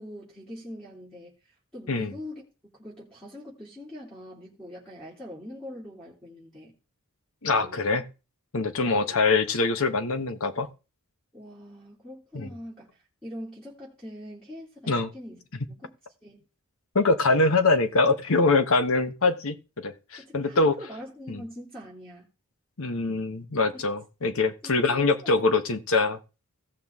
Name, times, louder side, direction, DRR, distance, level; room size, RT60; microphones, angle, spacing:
voice 1, 0.0-1.3 1.7-2.4 2.8-6.7 7.5-8.0 8.8-9.2 11.3-12.9 13.2-16.0 16.2-16.4 20.2-22.3 23.7-23.8 24.6-25.5, equal, 5° left, 2.8 m, -43 dB
voice 2, 7.4-8.0 8.5-10.7 12.3-12.5 14.9-15.1 16.9-20.7 21.3-21.4 22.8-26.2, left 3 dB, 65° left, 1.1 m, -24 dB
16.5 x 5.9 x 3.6 m
head